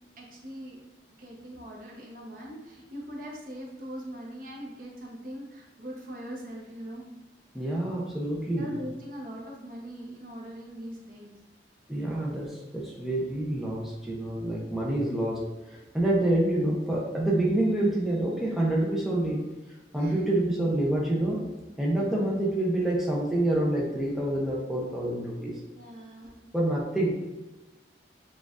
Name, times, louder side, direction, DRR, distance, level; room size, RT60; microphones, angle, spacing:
voice 1, 0.2-0.8 1.2-7.1 8.5-11.3 19.9-20.2 22.0-22.2 25.7-26.4, equal, 50° right, -1 dB, 0.8 m, -41 dB
voice 2, 7.5-8.7 11.9-15.4 15.7-19.4 19.9-21.4 21.8-25.5 26.5-27.2, right 1 dB, ahead, -5 dB, 0.6 m, -27 dB
6.2 x 2.4 x 2.4 m, 1.1 s
head